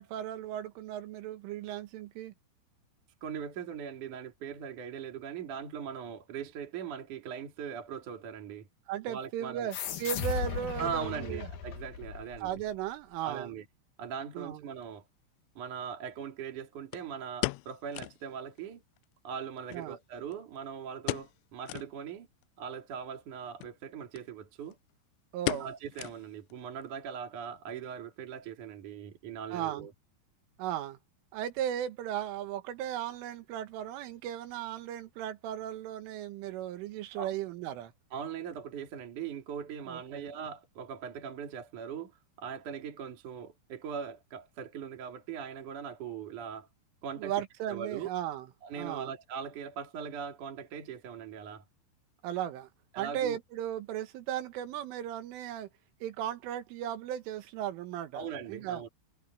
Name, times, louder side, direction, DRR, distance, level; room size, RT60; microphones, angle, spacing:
voice 1, 0.0-2.3 8.9-11.5 12.4-13.5 14.4-14.6 19.7-20.0 25.3-25.7 29.5-29.9 30.6-31.0 31.3-37.9 39.9-40.3 47.2-48.5 48.8-49.1 52.2-52.7 53.0-55.7 56.0-58.8, right 11 dB, 90° right, 4.1 m, -36 dB
voice 2, 3.2-8.7 9.1-9.7 10.8-12.6 13.2-13.7 14.0-15.1 15.6-18.8 19.2-22.3 22.6-24.8 25.6-29.9 37.2-37.3 38.1-42.1 42.4-46.7 47.0-47.3 47.7-48.1 48.6-51.6 52.9-53.4 58.1-58.9, right 7 dB, 45° right, 3.8 m, -40 dB
sound 1, 9.7-12.8, left 7 dB, 60° left, 2.5 m, -37 dB
sound 2, 14.8-14.9 16.9-18.3 18.6-18.7 19.0-19.1 19.7-20.6 21.0-21.4 21.7-21.9 22.4-22.5 23.5-23.8 24.1-24.3 24.6-24.9 25.5-26.5 26.8-26.9 27.5-27.8 28.1-28.2, left 22 dB, 85° left, 2.7 m, -37 dB
omnidirectional pair, 5.5 m